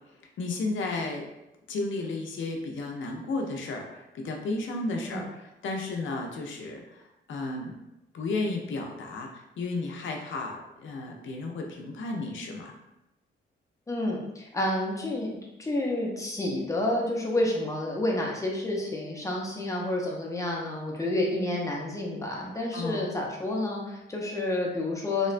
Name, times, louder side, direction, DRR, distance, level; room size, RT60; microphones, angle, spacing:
voice 1, 0.4-1.3 1.7-6.8 7.3-7.8 8.1-9.3 9.6-12.7 22.7-23.1, left 3 dB, 70° left, 2 dB, 0.5 m, -33 dB
voice 2, 13.9-15.3 15.6-25.3, left 1 dB, 15° left, -2 dB, 0.5 m, -29 dB
2.9 x 2.1 x 2.4 m, 0.92 s
wide cardioid pair, 135°, 20 cm